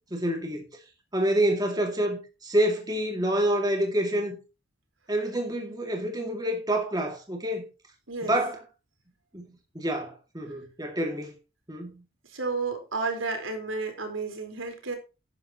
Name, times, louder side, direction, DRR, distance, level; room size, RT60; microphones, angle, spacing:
voice 1, 0.1-0.6 1.1-4.4 5.1-7.6 8.2-8.6 9.3-11.4 11.7-12.0, right 1 dB, 20° right, 2.1 m, -27 dB
voice 2, 12.3-15.0, right 3 dB, 85° right, 4.1 m, -31 dB
12.5 x 10.5 x 2.9 m
head